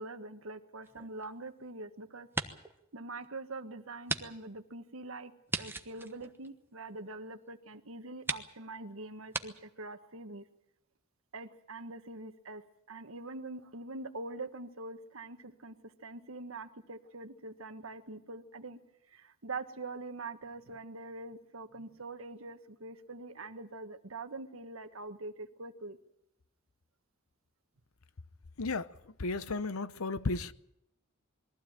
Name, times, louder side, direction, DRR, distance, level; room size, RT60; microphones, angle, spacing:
voice 1, 0.0-2.3 2.9-5.3 5.6-10.5 11.3-12.6 12.9-18.8 19.1-26.0, right 2 dB, 70° right, 1.4 m, -44 dB
sound 1, 0.8-1.8 2.2-2.8 3.2-3.3 4.0-4.2 4.5-4.6 5.5-7.1 7.7-7.8 8.2-8.5 9.3-9.5, right 3 dB, 10° right, 1.1 m, -37 dB
voice 2, 29.2-30.5, left 3 dB, 85° left, 0.9 m, -33 dB
22.0 x 15.0 x 8.9 m
head